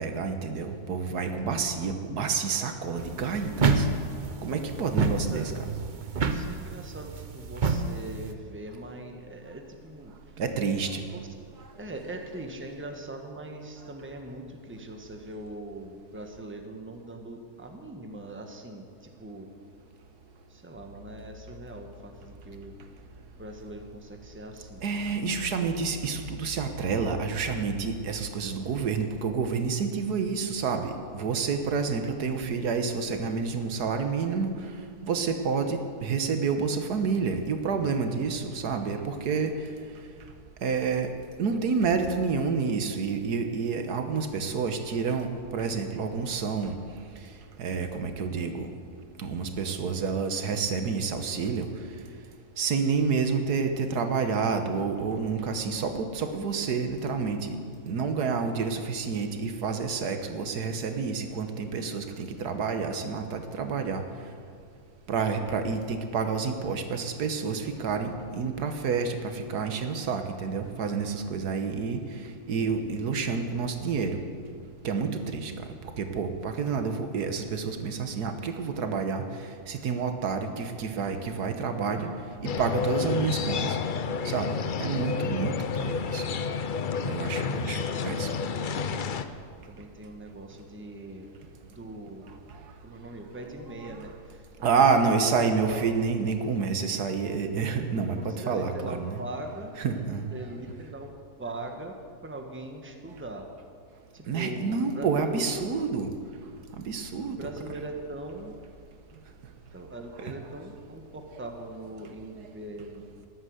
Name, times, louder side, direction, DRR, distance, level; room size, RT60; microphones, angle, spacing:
voice 1, 0.0-3.9 4.4-5.5 10.4-11.0 24.8-34.5 35.0-39.5 40.6-41.1 41.4-45.3 45.5-46.8 47.6-48.7 49.2-51.7 52.6-57.6 57.9-64.0 65.1-72.0 72.5-74.2 74.8-75.5 76.0-79.2 79.7-82.1 82.4-83.8 84.3-84.5 84.8-85.5 85.8-86.2 87.1-87.8 88.0-88.3 94.6-99.2 99.8-100.3 104.3-106.1 106.8-107.4, right 5 dB, 80° right, 7 dB, 1.6 m, -29 dB
sound 1, 3.0-8.3, right 4 dB, 40° right, 0.7 m, -29 dB
voice 2, 6.2-10.4 11.0-11.3 11.7-19.5 20.5-22.7 23.4-24.8 87.5-89.3 89.7-91.3 91.7-92.3 92.8-94.8 95.3-95.8 98.0-99.7 100.3-101.1 101.4-101.9 102.2-103.5 104.1-105.7 107.2-108.5 109.7-113.1, right 1 dB, 10° right, 3 dB, 1.2 m, -41 dB
sound 2, 20.7-28.3, left 3 dB, 60° right, 3.5 m, -47 dB
sound 3, 82.4-89.2, left 6 dB, 65° left, 0.5 m, -30 dB
13.5 x 11.0 x 7.9 m, 2.1 s
omnidirectional pair, 1.7 m